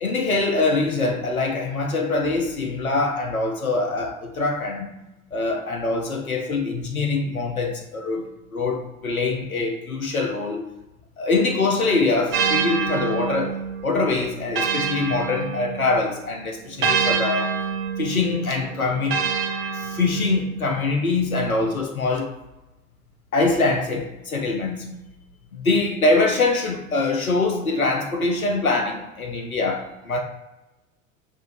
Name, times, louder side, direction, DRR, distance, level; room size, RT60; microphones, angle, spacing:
voice 1, 0.0-4.9 5.3-10.6 11.2-13.6 13.8-17.6 18.0-19.2 19.7-22.3 23.3-25.0 25.5-30.2, left 3 dB, 90° left, 0.7 m, -24 dB
sound 1, 12.3-16.0 16.8-20.5, right 6 dB, 30° right, 0.9 m, -26 dB
6.3 x 2.9 x 2.6 m
figure-of-eight pair, 80°, 41 cm